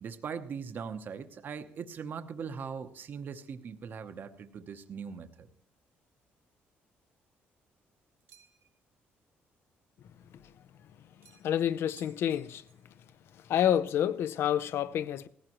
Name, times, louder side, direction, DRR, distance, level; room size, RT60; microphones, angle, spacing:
voice 1, 0.0-5.5, right 6 dB, 50° right, 0.8 m, -40 dB
sound 1, 8.3-8.8 11.2-11.6 12.0-12.9, right 8 dB, 65° right, 1.6 m, -59 dB
voice 2, 11.4-12.6 13.3-15.3, left 10 dB, 70° left, 0.6 m, -29 dB
18.0 x 15.0 x 3.0 m
cardioid pair, 120°, 4 cm